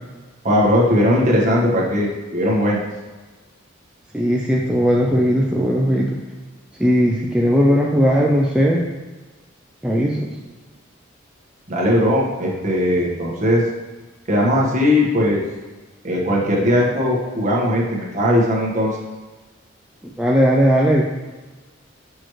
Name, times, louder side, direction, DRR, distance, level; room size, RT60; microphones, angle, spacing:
voice 1, 0.4-2.8 11.7-13.6 14.3-15.4 16.0-19.0, equal, 40° right, -4 dB, 1.5 m, -18 dB
voice 2, 4.1-6.2 6.8-8.9 9.8-10.3 20.2-21.1, equal, 5° right, -3 dB, 0.4 m, -17 dB
6.2 x 6.2 x 3.2 m, 1.3 s
head